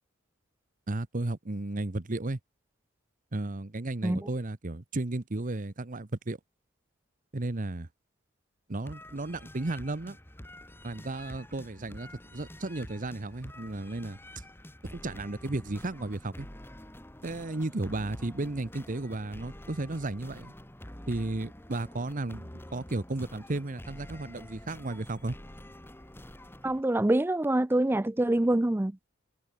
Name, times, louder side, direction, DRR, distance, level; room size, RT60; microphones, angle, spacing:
voice 1, 0.9-2.4 3.3-6.4 7.3-7.9 8.7-10.2 10.8-14.4 14.9-16.5 17.2-20.5 21.1-25.3, right 2 dB, 40° right, 1.0 m, -34 dB
sound 1, 8.8-26.8, left 1 dB, 10° left, 2.2 m, -47 dB
voice 2, 26.6-29.0, right 1 dB, 10° right, 0.5 m, -25 dB
head